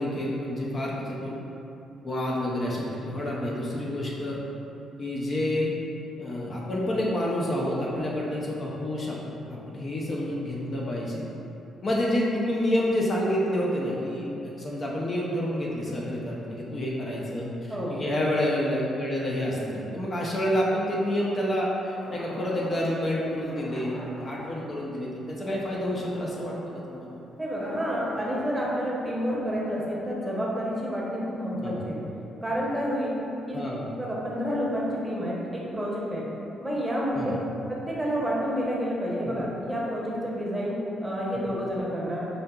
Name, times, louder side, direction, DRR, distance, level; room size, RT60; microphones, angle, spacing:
voice 1, 0.0-1.4 2.0-4.4 5.0-5.7 6.2-9.2 9.5-11.2 11.8-17.5 17.9-26.6 26.9-27.2 31.6-31.9 33.5-33.9 37.1-37.4 39.2-39.4, left 1 dB, 40° left, -4 dB, 0.5 m, -28 dB
sound 1, 22.0-23.0 23.4-28.7, left 1 dB, 60° left, 1.1 m, -43 dB
voice 2, 27.4-32.0 32.4-33.2 33.5-33.6 34.0-36.3 36.6-37.4 37.7-42.3, equal, 10° right, -5 dB, 0.8 m, -29 dB
5.0 x 2.7 x 2.3 m, 2.9 s
cardioid pair, 90°, 0 cm